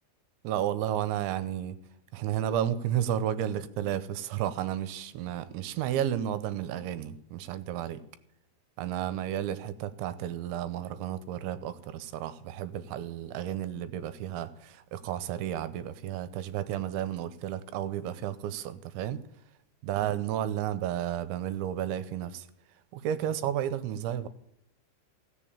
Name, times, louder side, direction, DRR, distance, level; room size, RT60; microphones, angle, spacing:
voice 1, 0.4-1.8 2.1-8.0 8.8-19.2 19.8-22.5 22.9-24.3, right 11 dB, 80° right, 3.0 m, -32 dB
16.5 x 7.0 x 8.7 m
omnidirectional pair, 5.5 m